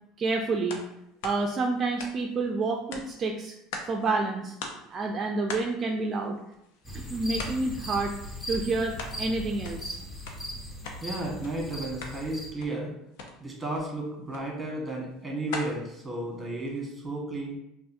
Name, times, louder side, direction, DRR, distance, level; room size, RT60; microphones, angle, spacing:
voice 1, 0.2-0.8 1.2-3.5 3.9-4.5 4.9-6.4 6.9-8.1 8.5-10.0, right 3 dB, 35° right, 2 dB, 0.4 m, -29 dB
sound 1, 0.7-0.9 1.2-2.5 2.9-4.1 4.3-4.4 4.6-5.0 5.5-6.9 7.4-7.7 8.1-9.2 9.5-11.0 11.4-11.6 11.9-12.2 12.6-12.8 13.1-13.3 13.7-13.9 14.3-14.5 14.9-16.8, left 3 dB, 80° left, 0.7 m, -41 dB
sound 2, 6.8-12.5, equal, 10° left, 1.1 m, -38 dB
voice 2, 11.0-12.9 13.4-17.6, right 2 dB, 15° right, -2 dB, 1.5 m, -33 dB
5.4 x 2.4 x 2.7 m, 0.81 s
supercardioid pair, 105°, 0 cm